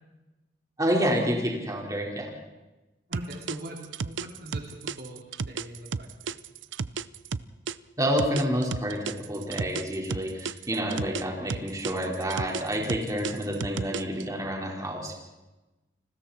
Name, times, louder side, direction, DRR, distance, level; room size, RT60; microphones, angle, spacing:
voice 1, 0.8-2.2 8.0-15.1, equal, 20° right, -1 dB, 4.5 m, -28 dB
voice 2, 3.1-3.8 4.0-6.4, right 1 dB, 60° right, 1 dB, 2.9 m, -41 dB
sound 1, 3.1-7.8 8.2-11.2 11.5-14.2, right 5 dB, 90° right, 0.6 m, -32 dB
29.5 x 20.5 x 4.4 m, 1.1 s
head